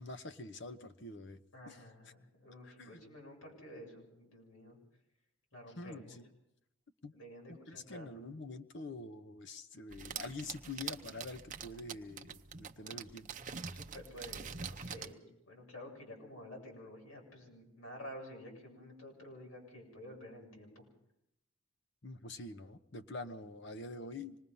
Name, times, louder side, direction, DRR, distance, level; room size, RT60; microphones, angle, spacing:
voice 1, 0.0-1.4 1.6-1.8 2.6-3.0 5.8-6.3 7.0-7.1 7.5-13.3 22.0-24.4, left 2 dB, 55° left, 9 dB, 1.0 m, -46 dB
voice 2, 1.5-4.8 5.5-6.2 7.1-8.2 12.8-13.0 13.7-20.8, equal, 70° left, 0 dB, 7.5 m, -51 dB
sound 1, 9.9-15.1, right 6 dB, 35° right, 0.7 m, -45 dB
26.0 x 20.5 x 5.6 m, 0.84 s
head